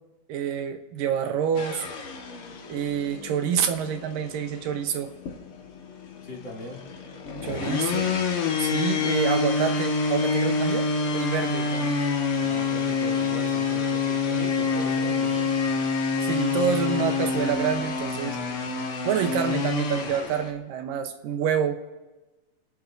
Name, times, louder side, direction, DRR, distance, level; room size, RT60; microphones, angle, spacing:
voice 1, 0.3-1.9 2.7-5.1 7.4-8.3 8.6-11.9 16.2-18.4 19.0-21.8, right 8 dB, 80° right, 6 dB, 2.5 m, -27 dB
sound 1, 1.5-20.5, left 4 dB, 50° left, 1.8 m, -27 dB
voice 2, 6.2-6.8 7.4-7.9 12.4-15.7, left 2 dB, 35° left, -3 dB, 3.0 m, -39 dB
28.5 x 17.5 x 2.6 m, 1.2 s
omnidirectional pair, 4.0 m